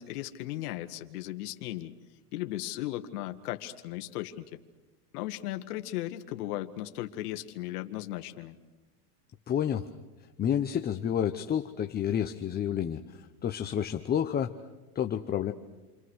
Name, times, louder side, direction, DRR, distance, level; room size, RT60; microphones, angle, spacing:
voice 1, 0.0-1.9 2.3-4.6 5.1-8.6, left 15 dB, 70° left, 7 dB, 1.7 m, -36 dB
voice 2, 9.5-9.9 10.4-14.5 14.9-15.5, left 9 dB, 20° left, 6 dB, 0.9 m, -30 dB
30.0 x 26.0 x 6.4 m, 1.2 s
supercardioid pair, 130°, 48 cm